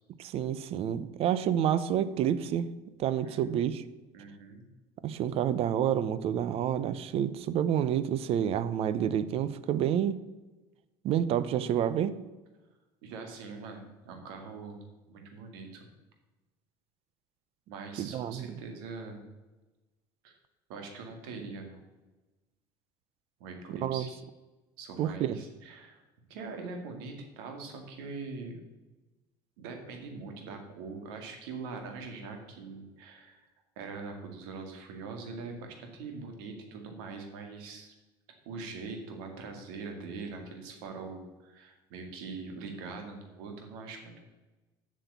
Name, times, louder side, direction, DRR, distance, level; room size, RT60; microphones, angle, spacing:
voice 1, 0.2-2.7 3.0-3.8 5.0-10.2 11.0-12.2 18.0-18.6 23.8-24.1 25.0-25.4, right 10 dB, 55° right, 16 dB, 0.7 m, -29 dB
voice 2, 4.1-4.7 13.0-15.9 17.7-19.2 20.2-20.3 20.7-21.8 23.4-24.1 24.8-26.0 26.3-28.6 29.6-33.5 33.8-37.9 38.5-44.2, right 4 dB, 85° right, 4 dB, 2.2 m, -42 dB
8.1 x 6.4 x 8.1 m, 1.1 s
supercardioid pair, 95°, 12 cm